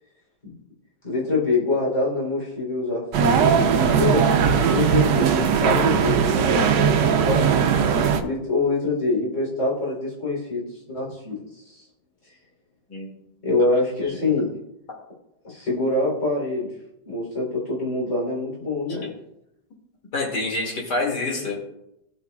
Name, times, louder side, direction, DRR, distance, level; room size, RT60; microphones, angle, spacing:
voice 1, 1.0-4.2 4.7-7.5 8.2-11.9 13.4-14.5 15.4-16.7 17.0-19.1, left 2 dB, 45° left, -6 dB, 4.0 m, -25 dB
sound 1, 3.1-8.2, right 7 dB, 85° right, 1.4 m, -19 dB
voice 2, 20.1-21.5, left 2 dB, 75° left, -1 dB, 2.9 m, -27 dB
17.0 x 5.7 x 2.4 m, 0.83 s
omnidirectional pair, 1.9 m